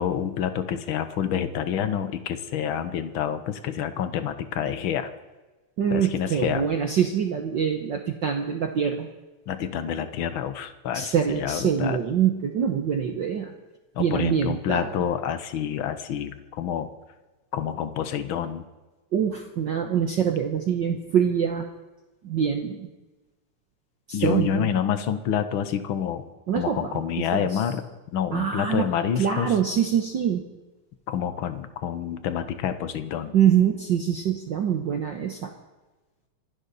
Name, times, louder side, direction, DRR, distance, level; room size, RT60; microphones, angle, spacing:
voice 1, 0.0-5.1 5.9-6.7 9.5-12.0 13.9-16.9 17.5-18.6 24.1-26.2 26.5-29.5 31.1-33.3, left 9 dB, 70° left, 11 dB, 1.2 m, -28 dB
voice 2, 5.8-9.1 10.9-13.5 14.0-14.9 19.1-21.7 22.2-22.9 24.1-24.7 26.5-27.6 28.3-28.8 29.2-30.4 33.3-35.5, right 8 dB, 65° right, 5 dB, 1.1 m, -24 dB
26.0 x 11.5 x 4.2 m, 1.2 s
omnidirectional pair, 3.4 m